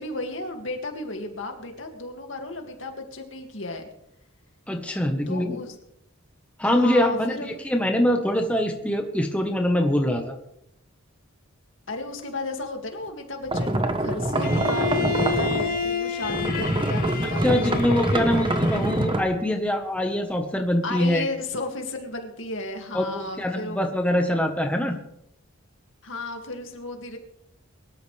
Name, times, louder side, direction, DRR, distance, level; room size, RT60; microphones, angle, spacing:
voice 1, 0.0-3.9 5.3-5.8 6.6-7.6 11.9-18.3 20.8-23.8 26.0-27.2, left 2 dB, 60° left, 3 dB, 2.4 m, -34 dB
voice 2, 4.7-5.6 6.6-7.4 7.6-10.3 17.4-21.2 22.9-25.0, left 1 dB, 5° left, 2 dB, 1.3 m, -23 dB
sound 1, 13.5-15.9 16.2-19.2, right 1 dB, 25° right, 1.2 m, -25 dB
Bowed string instrument, 14.4-19.3, left 5 dB, 45° left, 2.2 m, -30 dB
23.5 x 13.0 x 3.4 m, 0.76 s
head